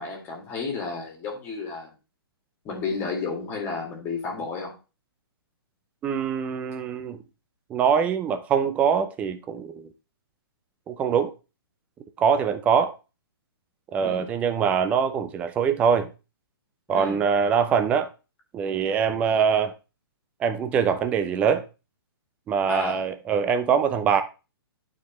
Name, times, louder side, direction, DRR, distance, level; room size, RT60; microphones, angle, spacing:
voice 1, 0.0-1.9 2.6-4.7 14.0-14.3 16.9-17.2 22.7-23.0, left 4 dB, 15° left, 2.3 m, -32 dB
voice 2, 6.0-7.2 7.7-9.9 10.9-11.3 12.2-12.9 13.9-16.1 16.9-18.1 18.5-19.7 20.4-21.7 22.5-24.2, right 7 dB, 10° right, 0.5 m, -23 dB
11.5 x 4.4 x 3.1 m
hypercardioid pair, 165°, 13 cm